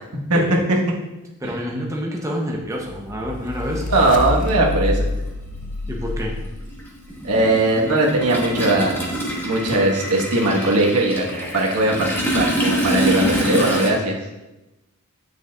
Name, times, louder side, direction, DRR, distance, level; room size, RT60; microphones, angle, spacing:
voice 1, 1.4-3.8 5.9-6.3, equal, 15° right, -1 dB, 0.8 m, -28 dB
sound 1, 2.9-7.1, left 2 dB, 35° left, 0.4 m, -27 dB
Toilet flush, 3.4-3.5 4.8-4.9 5.3-13.9, equal, 10° left, 1.1 m, -26 dB
voice 2, 3.9-5.1 7.2-14.2, right 2 dB, 90° right, -2 dB, 1.4 m, -19 dB
8.9 x 6.5 x 2.4 m, 1.0 s
head